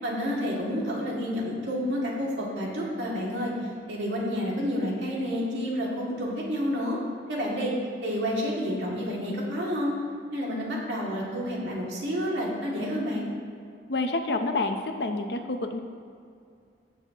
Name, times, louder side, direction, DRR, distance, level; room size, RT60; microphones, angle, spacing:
voice 1, 0.0-7.0 7.3-7.7 8.0-10.0 10.3-13.3, equal, 85° right, -4 dB, 2.4 m, -29 dB
voice 2, 13.9-15.8, left 2 dB, 70° left, 6 dB, 0.8 m, -28 dB
17.5 x 6.3 x 3.0 m, 2.4 s
head